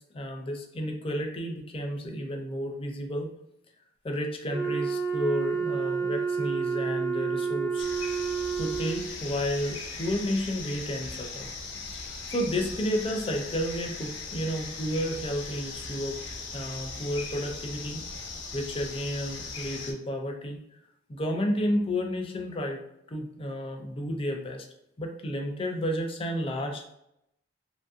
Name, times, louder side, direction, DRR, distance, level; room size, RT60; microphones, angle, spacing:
voice 1, 0.1-3.3 4.0-7.8 8.6-11.5 11.9-12.0 12.3-16.2 16.5-18.0 18.5-20.6 21.1-22.8 23.1-24.6 25.0-26.9, equal, 30° left, 3 dB, 0.4 m, -31 dB
Wind instrument woodwind instrument, 4.5-9.2, right 6 dB, 60° right, 1.1 m, -29 dB
sound 1, 7.8-19.9, left 4 dB, 80° left, 0.7 m, -39 dB
3.0 x 2.6 x 2.4 m, 0.79 s
head